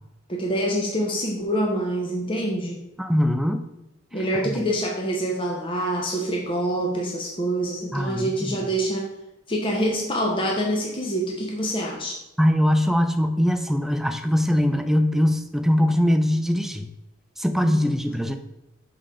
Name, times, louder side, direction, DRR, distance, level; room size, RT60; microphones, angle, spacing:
voice 1, 0.3-2.8 4.1-9.1 9.5-12.2 17.7-17.9, right 1 dB, 25° left, -1 dB, 0.7 m, -26 dB
voice 2, 3.0-3.6 4.4-4.7 7.9-8.6 12.4-16.9 17.4-18.4, equal, ahead, 7 dB, 0.3 m, -22 dB
4.9 x 3.8 x 5.5 m, 0.94 s
head